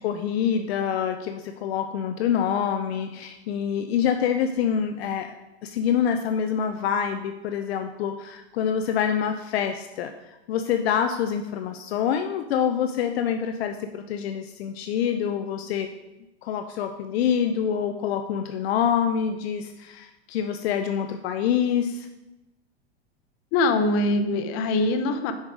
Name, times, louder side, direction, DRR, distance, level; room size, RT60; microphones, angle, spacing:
voice 1, 0.0-5.3 5.6-15.9 16.4-22.1, left 8 dB, 65° left, 7 dB, 0.6 m, -26 dB
voice 2, 23.5-25.3, left 2 dB, 40° left, 8 dB, 0.9 m, -23 dB
6.3 x 5.5 x 4.9 m, 1.0 s
hypercardioid pair, 125°, 34 cm